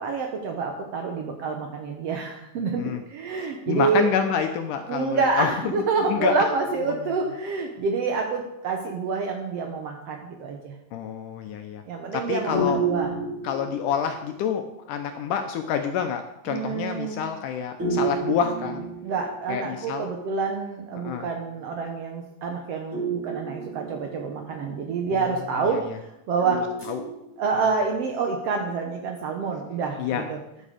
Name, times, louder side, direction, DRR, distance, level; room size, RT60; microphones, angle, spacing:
voice 1, 0.0-4.1 4.9-10.7 11.9-13.1 16.5-17.3 19.0-26.6 27.4-30.4, right 4 dB, 90° right, 3 dB, 1.3 m, -27 dB
voice 2, 3.4-5.5 6.1-6.4 10.9-11.8 12.1-12.8 13.4-18.9 19.5-20.1 21.0-21.3 25.1-25.3 25.7-25.8 26.9-27.0 30.0-30.2, left 8 dB, 75° left, 6 dB, 2.0 m, -28 dB
sound 1, 12.5-14.2 17.8-19.6 22.9-24.5 26.4-27.6, right 2 dB, 20° right, 3.4 m, -30 dB
10.5 x 8.1 x 4.9 m, 0.84 s
omnidirectional pair, 4.2 m